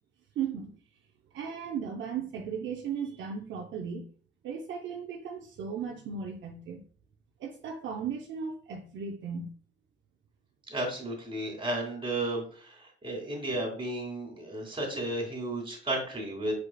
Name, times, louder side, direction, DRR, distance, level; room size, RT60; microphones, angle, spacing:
voice 1, 0.4-0.7 1.3-4.1 4.4-6.8 7.4-9.5, right 6 dB, 75° right, 2 dB, 0.7 m, -36 dB
voice 2, 10.7-16.5, right 1 dB, 25° right, 0 dB, 2.5 m, -33 dB
4.8 x 4.8 x 2.3 m, 0.42 s
cardioid pair, 90°, 20 cm